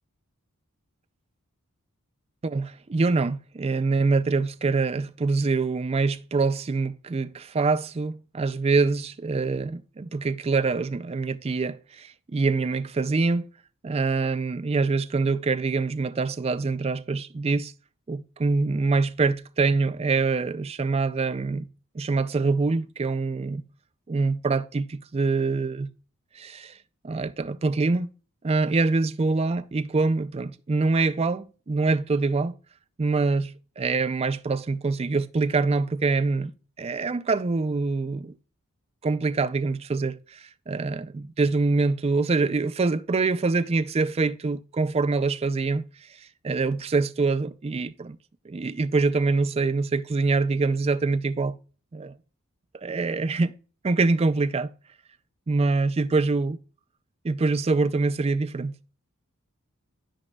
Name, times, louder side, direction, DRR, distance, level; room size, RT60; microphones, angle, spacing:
voice 1, 2.4-13.5 13.8-17.7 18.1-21.7 21.9-23.6 24.1-25.9 26.4-26.7 27.0-28.1 28.4-32.5 33.0-38.3 39.0-45.8 46.4-48.2 48.5-51.6 51.9-52.1 52.8-53.5 53.8-54.7 55.5-56.6 57.2-58.8, right 3 dB, 30° right, 0.4 m, -25 dB
13.0 x 5.1 x 2.2 m
head